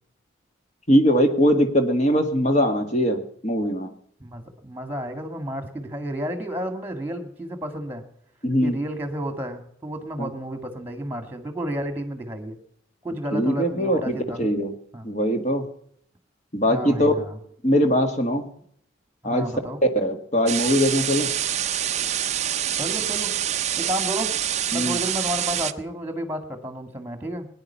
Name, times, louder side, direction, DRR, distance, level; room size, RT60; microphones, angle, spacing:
voice 1, 0.9-3.9 8.4-8.8 10.2-10.3 13.3-14.7 15.0-15.6 16.5-17.1 17.6-18.5 19.2-19.5 20.0-21.3 24.7-25.0, equal, 35° left, 6 dB, 1.7 m, -21 dB
voice 2, 4.2-8.0 8.6-12.6 13.0-14.4 14.9-15.1 16.7-17.4 19.2-19.8 22.7-23.3 23.8-24.3 24.7-27.5, equal, 10° right, 7 dB, 1.9 m, -31 dB
sound 1, 20.5-25.7, right 10 dB, 35° right, 0.5 m, -26 dB
19.0 x 10.0 x 5.6 m, 0.66 s
head